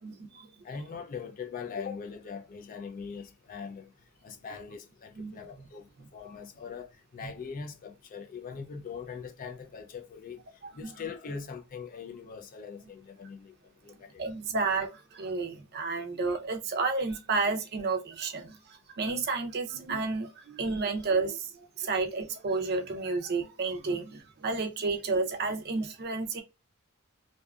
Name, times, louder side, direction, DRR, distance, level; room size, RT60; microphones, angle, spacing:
voice 1, 0.0-0.5 5.2-5.4 7.2-7.3 10.8-10.9 14.2-21.5 21.8-26.4, right 3 dB, 45° right, 0.5 m, -31 dB
voice 2, 0.6-3.9 4.2-10.4 10.8-13.5 13.8-14.2, left 5 dB, 40° left, 0.3 m, -41 dB
2.6 x 2.3 x 2.3 m
head